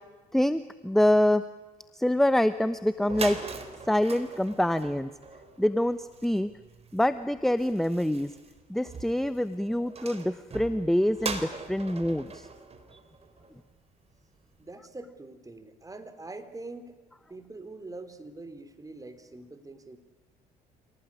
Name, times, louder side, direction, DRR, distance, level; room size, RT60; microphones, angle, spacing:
voice 1, 0.3-1.4 1.9-3.4 3.9-5.1 5.6-6.5 6.9-8.3 8.7-12.5 12.9-13.0, left 1 dB, ahead, 13 dB, 1.0 m, -25 dB
sound 1, 2.7-2.8 3.0-13.8, right 4 dB, 35° right, 3.8 m, -41 dB
voice 2, 14.6-17.0 17.3-20.0, right 2 dB, 20° right, 10 dB, 3.6 m, -44 dB
27.0 x 18.5 x 9.9 m, 1.2 s
hypercardioid pair, 65°, 17 cm